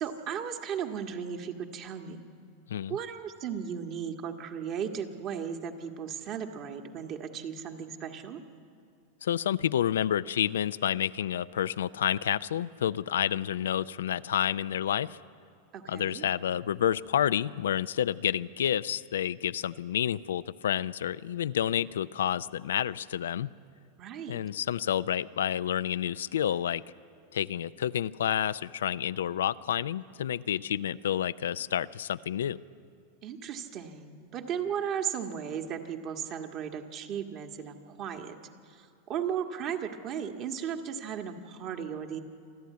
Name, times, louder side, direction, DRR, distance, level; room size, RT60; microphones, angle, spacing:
voice 1, 0.0-2.2 2.9-8.4 15.7-16.2 24.0-24.4 33.2-38.3 38.7-42.2, right 8 dB, 45° right, 4 dB, 1.7 m, -36 dB
voice 2, 9.2-15.2 15.9-23.5 24.3-26.8 27.3-32.6, left 10 dB, 85° left, 15 dB, 0.4 m, -29 dB
27.5 x 11.5 x 9.4 m, 2.5 s
hypercardioid pair, 115°, 0 cm